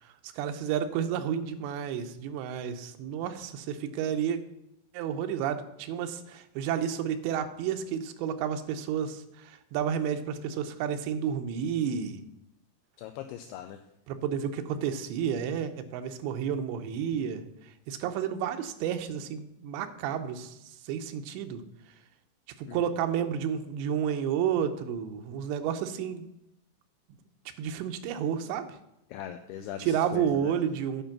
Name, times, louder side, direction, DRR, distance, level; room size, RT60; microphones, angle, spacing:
voice 1, 0.0-4.4 4.9-12.2 14.1-21.6 22.6-26.3 27.6-28.8 29.8-31.0, right 8 dB, 90° right, 8 dB, 3.0 m, -31 dB
voice 2, 13.0-13.8 22.7-22.8 29.1-30.5, left 10 dB, 85° left, 7 dB, 2.4 m, -40 dB
9.2 x 5.3 x 5.8 m, 0.87 s
omnidirectional pair, 5.0 m